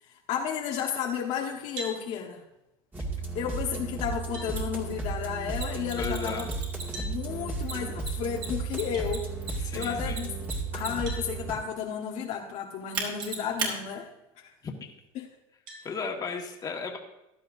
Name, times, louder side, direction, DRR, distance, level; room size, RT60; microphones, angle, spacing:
voice 1, 0.3-2.4 3.3-6.5 6.9-9.3 9.7-10.3 10.7-14.1 14.4-14.5 15.1-15.3, left 8 dB, 60° left, 0 dB, 1.4 m, -32 dB
sound 1, 1.8-2.0 3.7-3.8 4.3-4.5 6.9-7.2 8.9-9.1 11.1-11.3 13.2-13.3 14.0-14.1 15.7-15.9, right 1 dB, 75° right, 3.6 m, -40 dB
sound 2, 2.9-11.5, right 3 dB, 15° right, 2.2 m, -34 dB
Mechanisms, 4.6-4.7 5.5-7.1 7.6-11.2 12.9-13.7, right 4 dB, 40° right, 3.4 m, -35 dB
voice 2, 6.0-6.5 9.6-10.2 14.6-14.7 15.8-17.0, left 5 dB, 30° left, 1 dB, 1.9 m, -34 dB
15.5 x 11.5 x 2.7 m, 0.90 s
supercardioid pair, 115°, 13 cm